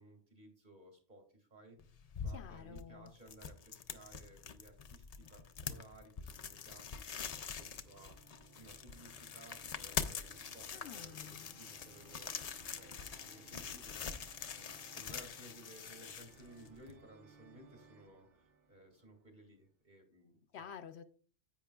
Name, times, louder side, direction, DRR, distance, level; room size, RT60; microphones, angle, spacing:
voice 1, 0.0-8.2 8.5-20.4, right 1 dB, 40° right, 2.2 m, -59 dB
sound 1, 1.8-16.9, left 6 dB, 55° left, 0.4 m, -45 dB
voice 2, 2.3-3.1 10.7-11.6 20.5-21.0, left 8 dB, 70° left, 0.8 m, -50 dB
sound 2, 5.2-6.4 7.0-19.7, right 3 dB, 80° right, 1.3 m, -63 dB
10.5 x 8.4 x 2.3 m
omnidirectional pair, 1.2 m